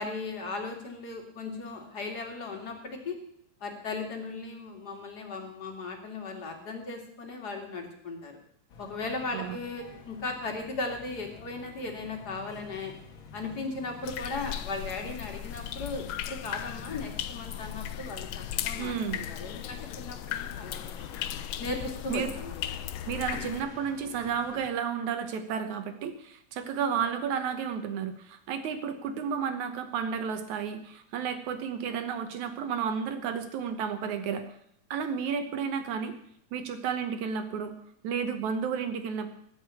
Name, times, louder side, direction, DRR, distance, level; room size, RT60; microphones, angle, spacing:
voice 1, 0.0-3.2 3.6-8.4 8.8-12.9 13.3-20.9 21.6-22.7, left 3 dB, 35° left, 2 dB, 2.7 m, -37 dB
sound 1, 8.7-24.7, left 5 dB, 50° left, 1.9 m, -49 dB
sound 2, 14.0-23.6, left 11 dB, 75° left, 1.5 m, -37 dB
voice 2, 18.8-19.2 22.1-22.3 23.1-34.5 34.9-36.2 36.5-37.7 38.0-39.3, right 7 dB, 75° right, 8 dB, 2.5 m, -32 dB
19.0 x 6.5 x 8.4 m, 0.71 s
omnidirectional pair, 3.4 m